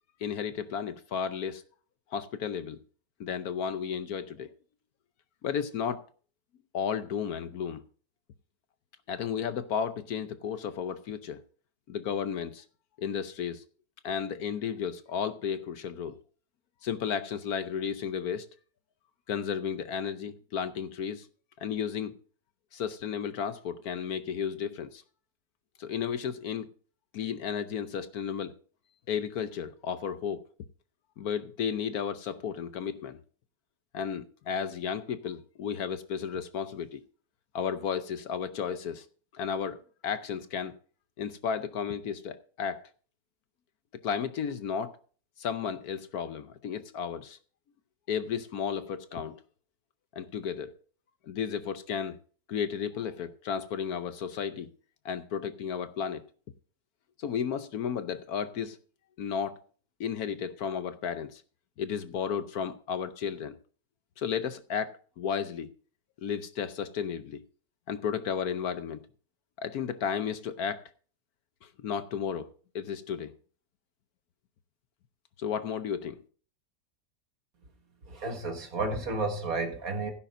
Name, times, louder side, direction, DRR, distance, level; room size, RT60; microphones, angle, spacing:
voice 1, 0.2-1.6 2.1-2.8 3.2-4.5 5.4-6.0 6.7-7.8 9.1-11.4 11.9-12.6 13.0-13.6 14.0-16.2 16.8-18.5 19.3-21.3 21.6-22.1 22.7-25.0 25.8-26.7 27.1-28.5 29.1-30.4 31.2-33.2 33.9-37.0 37.5-39.0 39.3-40.7 41.2-42.8 44.0-44.9 45.4-47.4 48.1-49.4 50.1-50.7 51.3-52.2 52.5-54.7 55.0-56.2 57.2-58.8 59.2-59.6 60.0-61.4 61.8-63.5 64.2-65.7 66.2-67.4 67.9-69.0 69.6-70.8 71.6-73.3 75.4-76.2, left 7 dB, 65° left, 1.2 m, -33 dB
voice 2, 78.1-80.1, right 3 dB, 55° right, 2.1 m, -32 dB
16.5 x 10.0 x 2.6 m
omnidirectional pair, 1.8 m